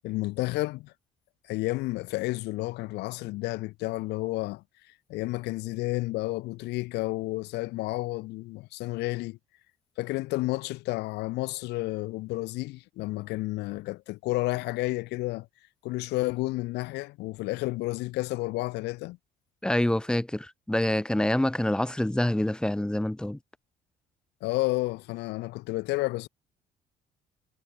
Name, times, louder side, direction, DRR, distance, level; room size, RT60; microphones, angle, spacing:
voice 1, 0.0-0.9 1.5-4.6 5.1-9.4 10.0-15.5 15.8-19.2 24.4-26.3, left 20 dB, 90° left, 1.3 m, -31 dB
voice 2, 19.6-23.4, left 1 dB, 5° left, 0.8 m, -26 dB
cardioid pair, 110°, 17 cm